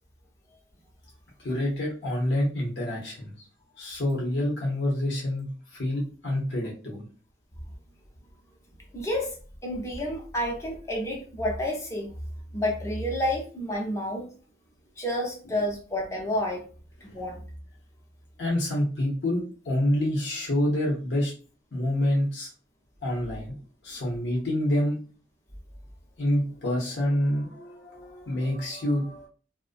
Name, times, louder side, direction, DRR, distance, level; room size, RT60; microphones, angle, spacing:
voice 1, 1.4-3.4 3.8-7.1 17.1-17.2 18.4-21.3 21.7-22.5 23.0-23.5 23.8-25.0 26.2-29.3, left 1 dB, 80° left, -3 dB, 0.8 m, -27 dB
voice 2, 8.9-9.4 9.6-12.1 12.5-14.3 15.0-16.6 17.0-17.4, left 1 dB, 15° left, -1 dB, 0.6 m, -29 dB
2.4 x 2.1 x 2.5 m, 0.38 s
head